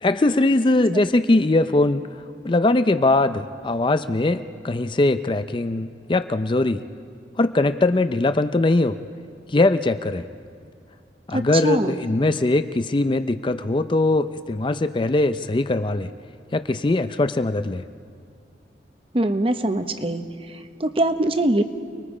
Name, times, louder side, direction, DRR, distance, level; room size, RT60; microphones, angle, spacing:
voice 1, 0.0-6.8 7.4-9.0 9.5-10.3 11.3-16.1 16.5-17.9, left 2 dB, 30° left, 10 dB, 0.5 m, -21 dB
voice 2, 11.3-11.9 19.1-20.2 20.8-21.6, right 1 dB, 30° right, 8 dB, 1.0 m, -22 dB
29.5 x 20.5 x 4.9 m, 2.2 s
head